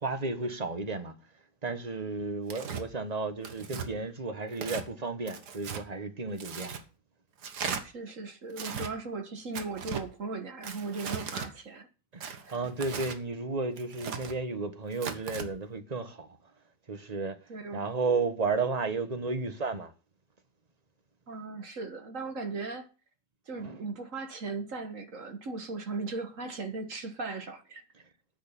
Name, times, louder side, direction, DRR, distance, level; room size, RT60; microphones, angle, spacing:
voice 1, 0.0-1.1 1.6-6.7 12.1-16.4 16.9-19.9 23.6-23.8, right 3 dB, 25° right, 1.3 m, -33 dB
Tearing, 2.5-2.8 3.4-3.9 4.5-4.9 5.3-5.8 6.4-6.8 7.4-7.8 8.5-8.9 9.5-10.1 10.6-11.5 12.2-13.2 13.8-14.3 14.9-15.5, right 6 dB, 70° right, 1.9 m, -37 dB
voice 2, 7.8-11.9 12.4-12.6 17.5-17.9 21.3-22.9 23.5-27.8, right 3 dB, 50° right, 1.7 m, -38 dB
9.6 x 6.5 x 8.3 m
omnidirectional pair, 1.8 m